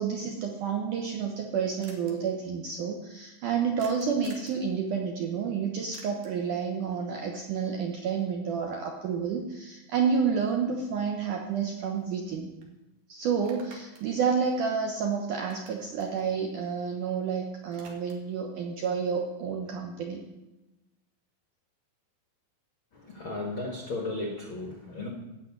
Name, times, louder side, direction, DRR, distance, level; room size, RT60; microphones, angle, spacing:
voice 1, 0.0-12.5 13.1-20.2, right 6 dB, 85° right, 2 dB, 1.7 m, -30 dB
sound 1, 1.8-2.1 3.8-4.6 5.9-6.5 10.7-10.8 11.1-12.3 12.6-12.7 13.3-15.1 15.4-17.2 17.5-18.4, right 3 dB, 50° right, 3.0 m, -53 dB
voice 2, 22.9-25.1, left 2 dB, 80° left, 1 dB, 1.1 m, -35 dB
16.5 x 6.5 x 9.5 m, 1.0 s
omnidirectional pair, 5.4 m